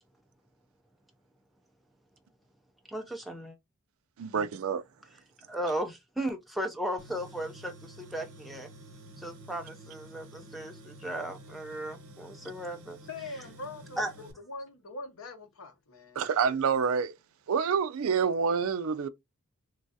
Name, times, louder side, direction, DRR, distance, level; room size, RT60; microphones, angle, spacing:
voice 1, 2.9-3.6 4.4-4.5 5.5-8.7 9.2-13.0 14.0-14.1, right 1 dB, ahead, 0.3 m, -36 dB
voice 2, 4.2-4.8 16.2-17.2 17.5-19.1, right 6 dB, 70° right, 0.4 m, -27 dB
Tools, 7.0-14.3, right 1 dB, 90° right, 0.8 m, -50 dB
voice 3, 13.1-16.6, left 3 dB, 70° left, 0.8 m, -43 dB
3.1 x 2.3 x 2.6 m
head